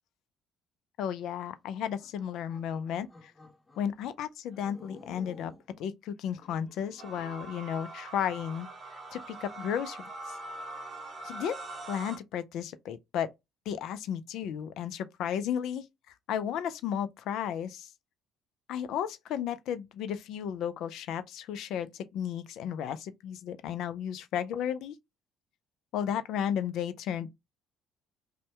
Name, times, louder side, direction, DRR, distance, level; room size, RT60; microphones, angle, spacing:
voice 1, 1.0-3.3 3.8-5.5 5.8-8.7 9.1-10.4 11.2-11.6 11.9-13.3 13.7-15.9 16.3-17.9 18.7-25.0 25.9-27.3, left 9 dB, 65° left, 0.3 m, -34 dB
sound 1, 2.0-3.9 4.5-5.7 6.2-7.6, left 3 dB, 25° left, 0.7 m, -54 dB
sound 2, 7.0-12.2, right 2 dB, 45° right, 0.8 m, -42 dB
2.7 x 2.1 x 3.2 m
hypercardioid pair, 60°, 0 cm